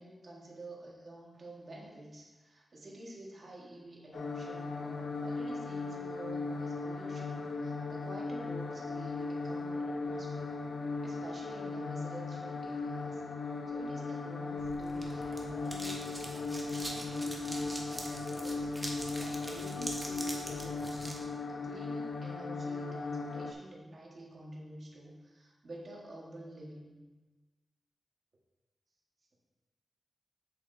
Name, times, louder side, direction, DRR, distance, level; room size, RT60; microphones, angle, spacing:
voice 1, 0.0-10.6 11.0-13.2 13.7-27.0, right 1 dB, 45° right, -3 dB, 1.5 m, -49 dB
sound 1, 4.1-23.5, left 3 dB, 85° left, 0.6 m, -37 dB
sound 2, 14.6-21.2, right 1 dB, 10° right, 1.0 m, -43 dB
7.7 x 7.2 x 2.7 m, 1.3 s
wide cardioid pair, 130°, 0 cm